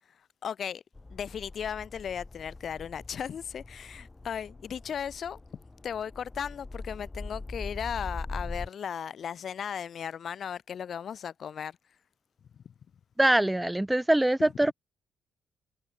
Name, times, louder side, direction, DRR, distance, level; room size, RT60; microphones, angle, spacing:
voice 1, 0.4-0.8 1.1-5.4 5.8-11.8 12.7-12.8, left 8 dB, 55° left, 5.5 m, -36 dB
sound 1, 1.0-8.7, left 2 dB, 20° left, 5.0 m, -42 dB
voice 2, 13.2-14.7, right 1 dB, 10° right, 1.0 m, -23 dB
cardioid pair, 90°, 0 cm